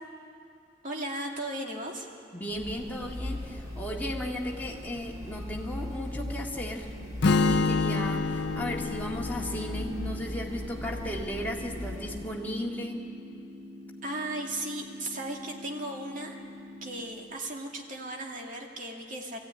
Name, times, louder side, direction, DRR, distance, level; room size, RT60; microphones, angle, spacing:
voice 1, 0.8-2.1 14.0-16.3 16.8-19.4, right 1 dB, 45° right, 0 dB, 2.4 m, -36 dB
voice 2, 2.3-6.9 7.5-13.0, left 1 dB, 10° left, -2 dB, 2.0 m, -35 dB
sound 1, 2.5-12.3, left 1 dB, 20° right, 3.0 m, -39 dB
sound 2, 7.0-17.0, left 1 dB, 75° right, 5.5 m, -46 dB
Strum, 7.2-11.4, left 3 dB, 60° left, 0.6 m, -28 dB
21.0 x 15.0 x 9.7 m, 2.5 s
head